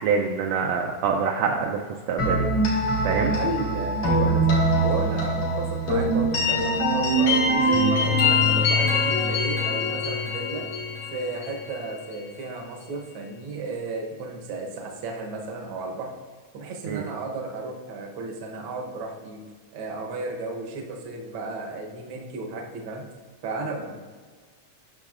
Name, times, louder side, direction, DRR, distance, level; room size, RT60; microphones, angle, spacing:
voice 1, 0.0-1.8 2.1-2.5 3.0-3.3 16.9-17.0, right 6 dB, 85° right, 1 dB, 1.5 m, -25 dB
sound 1, 2.2-11.9, equal, 80° left, 3.3 m, -23 dB
voice 2, 3.1-10.7 11.1-16.1 16.5-19.4 19.7-23.0 23.4-24.0, right 3 dB, 65° right, 1 dB, 1.3 m, -33 dB
10.5 x 6.1 x 2.5 m, 1.5 s
omnidirectional pair, 3.5 m